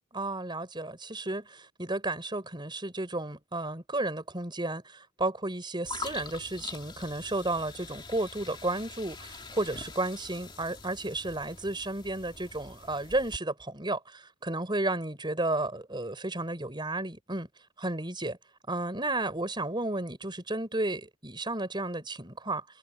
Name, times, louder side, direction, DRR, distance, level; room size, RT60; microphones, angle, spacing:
voice 1, 0.1-17.5 17.8-18.4 18.7-22.6, right 2 dB, 25° right, 6.2 m, -33 dB
sound 1, 5.8-13.4, left 4 dB, 25° left, 2.6 m, -44 dB
head